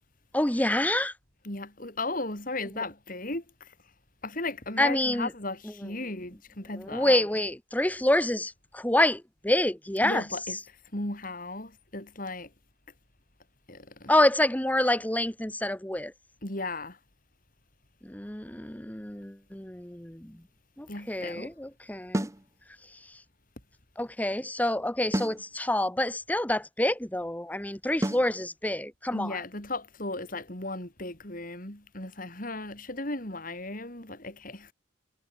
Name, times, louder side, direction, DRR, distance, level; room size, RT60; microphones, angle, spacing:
voice 1, 0.3-1.1 4.8-5.3 6.8-10.2 14.1-16.1 18.0-20.4 20.8-22.3 24.0-29.4, left 1 dB, 10° left, 1.1 m, -27 dB
voice 2, 1.4-3.7 4.2-7.3 10.0-12.5 13.7-14.1 16.4-17.0 20.9-21.5 29.1-34.7, left 2 dB, 45° left, 4.8 m, -36 dB
sound 1, 22.1-22.4 25.1-25.4 28.0-28.3, right 1 dB, 15° right, 1.2 m, -29 dB
head